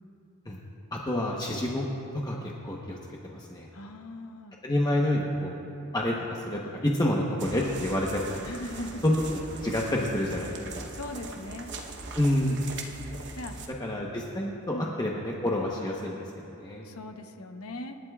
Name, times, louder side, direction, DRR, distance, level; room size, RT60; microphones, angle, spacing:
voice 1, 0.9-1.8 2.1-3.0 3.2-3.7 4.6-5.6 5.9-8.3 9.0-10.8 12.1-12.6 13.8-16.2 16.6-16.9, left 1 dB, 20° left, -3 dB, 1.0 m, -28 dB
voice 2, 3.7-4.6 8.4-9.0 10.9-11.7 13.3-13.6 14.7-14.9 16.8-18.0, left 1 dB, 80° left, 5 dB, 1.0 m, -39 dB
sound 1, 7.4-13.7, right 3 dB, 55° right, 1.1 m, -41 dB
27.0 x 11.5 x 2.4 m, 2.9 s
head